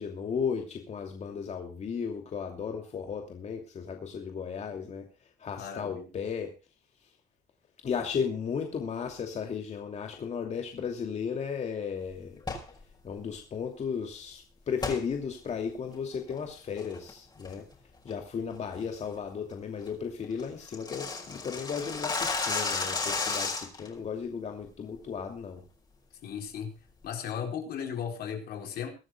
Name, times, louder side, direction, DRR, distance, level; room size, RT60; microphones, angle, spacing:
voice 1, 0.0-5.1 5.4-6.5 7.8-12.4 13.0-17.7 18.0-25.6, left 6 dB, 40° left, 3 dB, 2.7 m, -35 dB
voice 2, 5.6-6.1 26.2-26.7 27.0-28.9, left 8 dB, 65° left, 3 dB, 4.5 m, -36 dB
sound 1, 12.4-12.7 14.8-15.0 15.5-15.6 16.1-16.4 16.8-17.1 17.4-17.7 18.1-18.2 18.6-18.8 19.2-19.3 19.6-19.7 19.9-20.0 20.2-23.9, left 3 dB, 25° left, 5.4 m, -32 dB
23.5 x 13.0 x 2.3 m, 0.31 s
cardioid pair, 110°, 17 cm